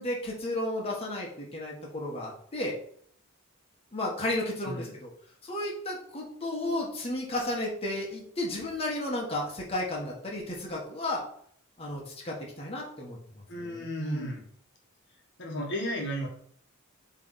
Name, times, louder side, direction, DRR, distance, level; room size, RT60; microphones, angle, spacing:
voice 1, 0.0-2.7 3.9-5.1 5.4-11.2 11.8-13.2 13.6-14.4, left 1 dB, 25° left, -3 dB, 1.6 m, -33 dB
voice 2, 13.5-14.4 15.4-16.3, equal, 55° left, 0 dB, 1.5 m, -34 dB
8.3 x 3.6 x 4.1 m, 0.62 s
head